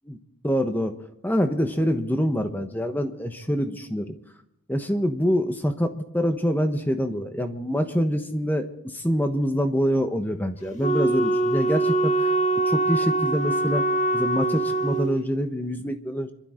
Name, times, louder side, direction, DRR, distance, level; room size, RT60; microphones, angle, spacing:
voice 1, 0.4-1.0 1.2-4.1 4.7-12.3 12.6-13.8 14.1-16.3, equal, 10° left, 7 dB, 1.1 m, -25 dB
Wind instrument woodwind instrument, 10.8-15.1, right 2 dB, 35° left, 1.5 m, -23 dB
26.5 x 12.5 x 3.8 m, 0.81 s
head